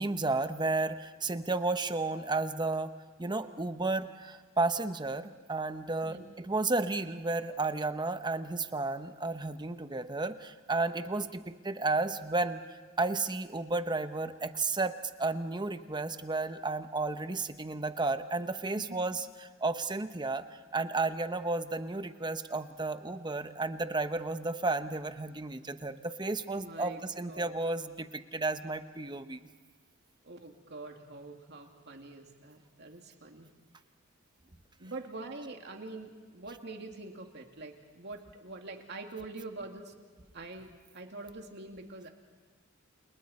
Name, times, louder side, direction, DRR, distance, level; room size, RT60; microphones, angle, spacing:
voice 1, 0.0-2.9 3.2-29.5, right 3 dB, 20° right, 10 dB, 0.9 m, -33 dB
voice 2, 26.5-27.5 30.2-33.5 34.8-39.9 40.3-42.1, right 2 dB, 55° right, 3 dB, 2.6 m, -45 dB
29.5 x 29.0 x 4.4 m, 1.5 s
head